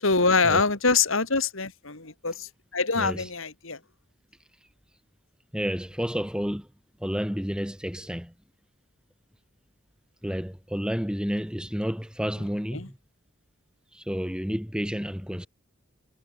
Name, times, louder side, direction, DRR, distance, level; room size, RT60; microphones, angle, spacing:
voice 1, 0.0-3.8 12.7-12.9, left 4 dB, 65° left, 2.7 m, -24 dB
voice 2, 3.0-3.3 5.5-6.7 7.0-8.3 10.2-13.0 13.9-15.5, equal, 5° right, 5.7 m, -30 dB
head